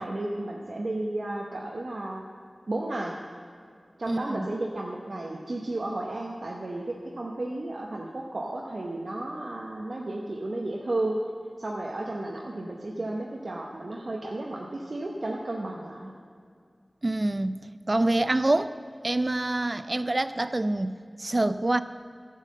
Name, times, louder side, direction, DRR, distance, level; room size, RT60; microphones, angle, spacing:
voice 1, 0.0-2.2 2.7-3.2 4.0-11.2 11.6-16.1, right 2 dB, 75° right, -2 dB, 0.8 m, -33 dB
voice 2, 4.1-4.5 17.0-18.7 19.0-21.8, right 2 dB, 45° right, 13 dB, 0.4 m, -26 dB
11.5 x 5.6 x 7.4 m, 2.2 s
wide cardioid pair, 45°, 0 cm